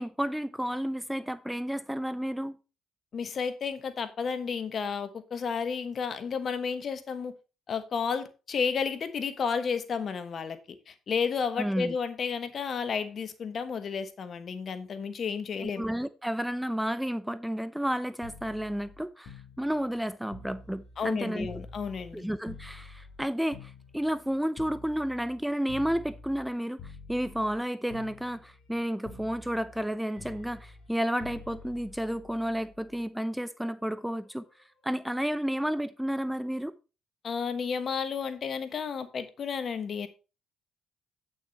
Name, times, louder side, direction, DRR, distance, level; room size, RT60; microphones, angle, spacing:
voice 1, 0.0-2.6 11.6-11.9 15.6-21.5 22.1-26.8 27.1-34.4 34.8-36.7, equal, 5° right, 0.7 m, -31 dB
voice 2, 3.1-7.3 7.7-15.8 21.0-22.3 37.2-40.1, left 6 dB, 50° left, 1.2 m, -32 dB
sound 1, 18.2-22.2 22.5-26.5 26.8-27.6 27.9-28.8 29.0-33.0 34.3-34.5, left 3 dB, 75° left, 2.1 m, -48 dB
8.8 x 6.2 x 4.2 m
supercardioid pair, 60°, 0 cm